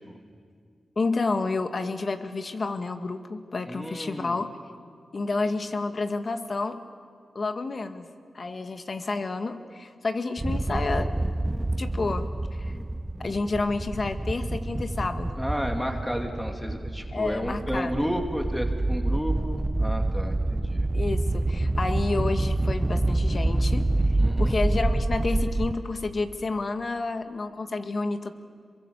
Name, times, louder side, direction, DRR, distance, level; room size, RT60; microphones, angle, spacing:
voice 1, 1.0-4.5 5.1-6.8 7.4-8.1 8.3-11.1 11.8-12.7 13.2-15.4 17.1-18.1 20.9-23.9 24.4-28.3, left 3 dB, 55° left, 7 dB, 1.9 m, -30 dB
voice 2, 3.7-4.4 15.4-20.9 24.2-24.6, equal, 5° left, 3 dB, 2.7 m, -32 dB
sound 1, 10.4-25.7, right 2 dB, 20° right, 1.0 m, -27 dB
27.5 x 23.0 x 7.2 m, 2.1 s
supercardioid pair, 45°, 0 cm